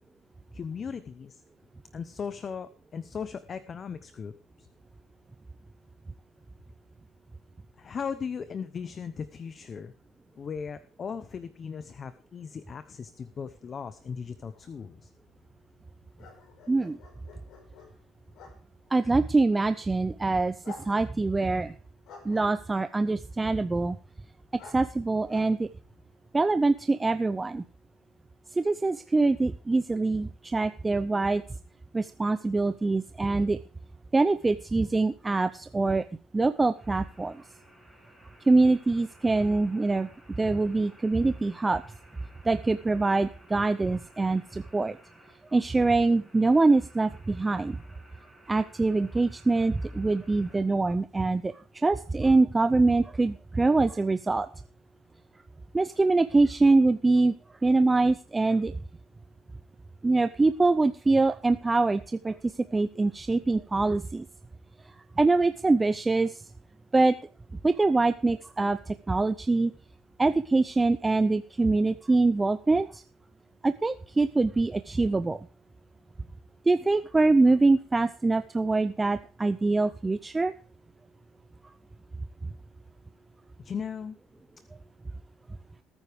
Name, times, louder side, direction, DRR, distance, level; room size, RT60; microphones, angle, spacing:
voice 1, 0.5-1.4 1.9-4.3 4.6-4.7 7.8-9.9 10.4-15.1 83.6-84.2, left 6 dB, 35° left, 12 dB, 0.8 m, -37 dB
sound 1, 13.9-26.4, left 5 dB, 65° left, 4.8 m, -53 dB
voice 2, 16.7-17.0 18.9-21.7 22.2-24.0 24.6-25.7 26.3-27.6 28.5-31.4 31.9-33.6 34.1-36.0 36.3-37.4 38.5-40.1 40.4-41.8 42.4-45.0 45.5-47.8 48.5-54.5 55.7-57.3 57.6-58.8 60.0-64.3 65.2-66.4 66.9-67.1 67.6-69.7 70.2-73.0 73.6-75.4 76.7-80.5, right 3 dB, 15° right, 11 dB, 0.5 m, -24 dB
sound 2, 36.7-50.6, right 1 dB, 5° left, 6.5 m, -57 dB
19.0 x 9.3 x 3.5 m, 0.39 s
cardioid pair, 115°, 0 cm